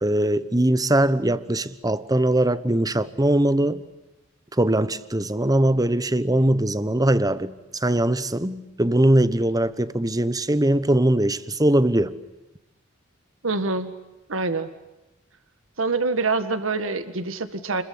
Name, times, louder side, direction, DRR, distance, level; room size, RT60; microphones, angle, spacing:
voice 1, 0.0-3.8 4.6-12.2, right 1 dB, 20° right, 1.1 m, -21 dB
voice 2, 13.4-13.9 14.3-14.7 15.8-17.8, right 3 dB, 70° right, 1.8 m, -25 dB
30.0 x 22.0 x 8.6 m
head